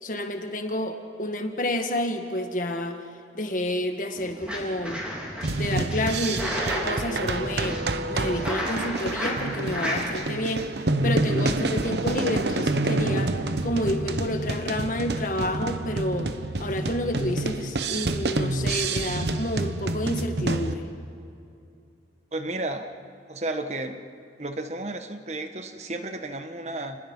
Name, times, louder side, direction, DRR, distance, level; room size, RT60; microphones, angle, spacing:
voice 1, 0.0-3.0 3.3-5.0 5.5-7.8 8.1-10.6 11.0-13.3 13.6-16.3 16.6-20.8, left 1 dB, 45° left, 5 dB, 1.7 m, -29 dB
sound 1, 4.2-5.5 5.9-10.1, equal, 5° right, 3.6 m, -33 dB
sound 2, 5.4-20.8, right 2 dB, 65° right, 1.0 m, -28 dB
voice 2, 22.3-22.9 23.3-24.0 24.4-27.0, right 2 dB, 35° right, 7 dB, 1.2 m, -32 dB
29.5 x 20.0 x 5.5 m, 2.5 s
head